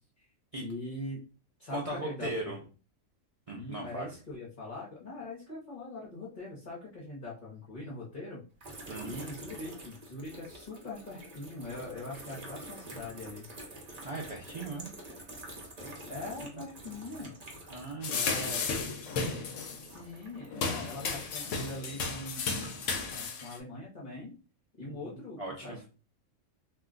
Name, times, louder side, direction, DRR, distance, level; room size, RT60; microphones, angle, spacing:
voice 1, 0.6-1.2 1.6-2.6 3.5-8.4 9.0-13.5 16.1-17.4 18.1-18.7 19.7-22.5 23.1-24.3 24.8-25.9, left 2 dB, 40° left, -6 dB, 0.9 m, -42 dB
voice 2, 1.7-2.6 3.5-4.1 8.9-9.1 14.0-14.9 16.5-16.6 17.7-18.8 24.8-25.8, right 2 dB, 65° right, -2 dB, 0.3 m, -39 dB
sound 1, 8.6-19.0 19.2-21.8 22.3-23.1, right 1 dB, 35° right, 0.8 m, -47 dB
sound 2, 18.0-19.9 20.5-23.6, left 4 dB, 70° left, 0.9 m, -34 dB
2.5 x 2.2 x 3.7 m, 0.35 s
omnidirectional pair, 1.4 m